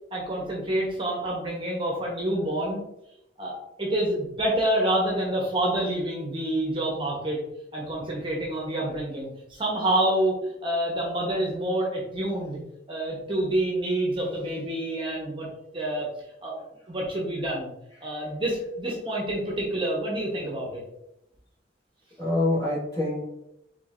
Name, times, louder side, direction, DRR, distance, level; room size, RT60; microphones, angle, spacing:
voice 1, 0.1-2.8 3.4-3.5 3.8-7.4 7.7-12.6 12.9-15.5 15.7-16.1 16.4-16.6 16.9-17.7 18.0-20.8, right 1 dB, 30° right, -3 dB, 1.0 m, -27 dB
voice 2, 22.2-23.2, left 2 dB, 20° left, -7 dB, 1.6 m, -26 dB
4.6 x 3.8 x 2.5 m, 0.83 s
head